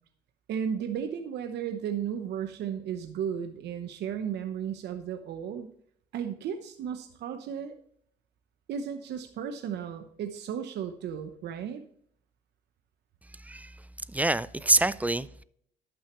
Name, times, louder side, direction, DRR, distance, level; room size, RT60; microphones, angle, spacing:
voice 1, 0.5-5.7 6.1-7.7 8.7-11.8, right 8 dB, 65° right, 0.9 m, -34 dB
voice 2, 13.4-13.8 14.1-15.4, right 2 dB, 10° right, 0.3 m, -26 dB
11.5 x 6.5 x 3.1 m
cardioid pair, 90°, 19 cm